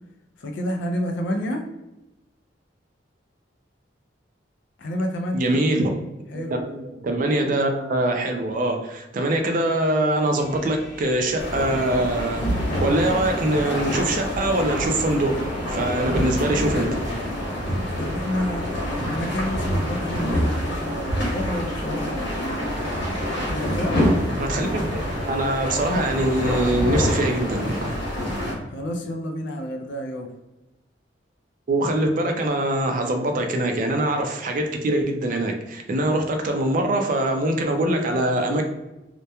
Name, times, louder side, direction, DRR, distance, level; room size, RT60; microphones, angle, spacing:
voice 1, 0.4-1.6 4.8-5.6 6.3-6.6 18.0-22.6 23.4-24.0 28.7-30.3, left 1 dB, 75° left, 3 dB, 0.3 m, -29 dB
voice 2, 5.3-6.0 6.3-12.5 12.8-15.3 15.7-16.9 24.4-27.9 31.7-38.6, right 1 dB, 45° right, 3 dB, 0.4 m, -23 dB
sound 1, 10.4-16.3, left 1 dB, 15° right, 0.8 m, -43 dB
sound 2, 11.4-28.5, equal, 90° left, 1.1 m, -26 dB
2.8 x 2.1 x 2.2 m, 0.99 s
head